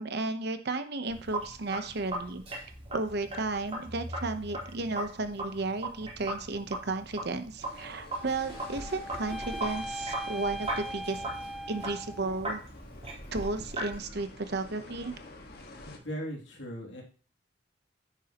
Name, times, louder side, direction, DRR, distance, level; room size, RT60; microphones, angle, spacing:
voice 1, 0.0-2.4 2.9-11.3 11.7-12.6 13.3-15.2, right 3 dB, 60° right, 9 dB, 1.0 m, -33 dB
Sink (filling or washing), 1.1-14.0, right 1 dB, 35° right, 4.0 m, -39 dB
sound 1, 7.6-16.0, left 2 dB, 55° left, 1.7 m, -48 dB
sound 2, 8.1-12.4, right 1 dB, ahead, 0.4 m, -40 dB
voice 2, 15.9-17.0, equal, 75° left, -1 dB, 2.9 m, -38 dB
10.0 x 9.3 x 3.0 m, 0.40 s
head